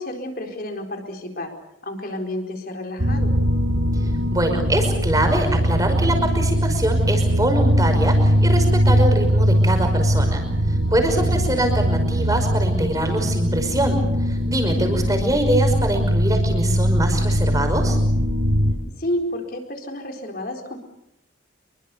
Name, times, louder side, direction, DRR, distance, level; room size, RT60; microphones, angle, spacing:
voice 1, 0.0-1.5 1.8-3.3 10.9-11.3 14.8-15.3 19.0-20.8, left 1 dB, 45° left, 4 dB, 4.3 m, -31 dB
sound 1, 3.0-18.7, equal, 70° right, 5.3 m, -20 dB
voice 2, 4.3-14.0 14.3-18.0, right 1 dB, 20° right, 5 dB, 5.4 m, -24 dB
27.0 x 23.5 x 7.0 m, 0.84 s
head